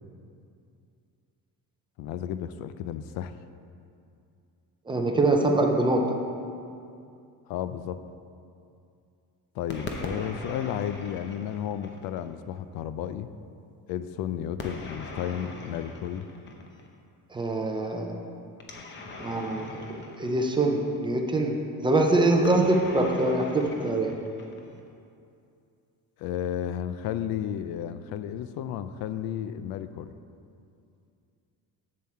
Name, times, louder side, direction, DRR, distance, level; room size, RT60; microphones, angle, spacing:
voice 1, 2.0-3.3 7.5-8.0 9.6-13.3 13.9-16.3 26.2-30.1, left 10 dB, 80° left, 12 dB, 0.5 m, -33 dB
voice 2, 4.9-6.0 17.3-18.2 19.2-19.8 20.2-24.1, right 2 dB, 15° right, 2 dB, 0.4 m, -24 dB
sound 1, 9.7-12.3 14.6-16.9 18.6-21.1 22.4-24.9, left 2 dB, 30° left, 0.8 m, -40 dB
7.6 x 7.2 x 4.3 m, 2.5 s
cardioid pair, 170°, 36 cm